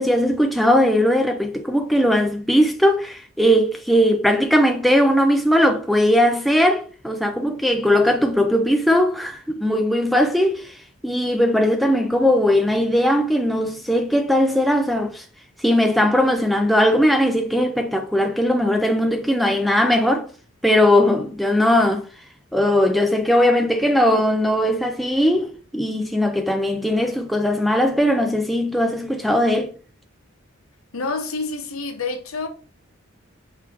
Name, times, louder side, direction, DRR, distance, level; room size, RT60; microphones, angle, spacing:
voice 1, 0.0-15.3 15.6-20.3 20.6-22.1 22.5-29.7, equal, ahead, 0.3 m, -19 dB
voice 2, 30.9-32.5, left 3 dB, 75° left, 0.9 m, -28 dB
4.9 x 3.0 x 3.4 m
head